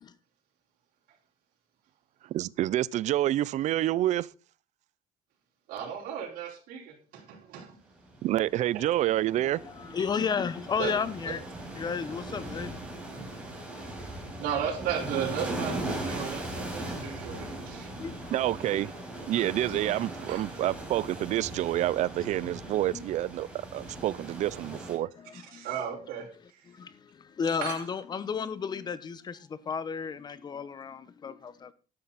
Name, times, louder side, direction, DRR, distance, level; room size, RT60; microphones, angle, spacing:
voice 1, 2.2-4.3 8.2-9.6 18.3-18.9 19.3-25.1, right 14 dB, 50° right, 0.5 m, -28 dB
voice 2, 5.7-7.8 10.8-10.9 13.1-13.3 14.4-17.9 20.3-20.4 25.3-26.6 27.6-27.8, right 8 dB, 70° right, 4.5 m, -35 dB
sound 1, 8.0-25.0, right 1 dB, 5° right, 5.2 m, -39 dB
voice 3, 9.5-11.4 11.8-12.8 16.3-17.4 17.8-18.3 22.9-23.0 25.0-25.7 26.7-31.7, left 6 dB, 25° left, 1.0 m, -34 dB
13.0 x 11.5 x 4.2 m
cardioid pair, 140°, 15 cm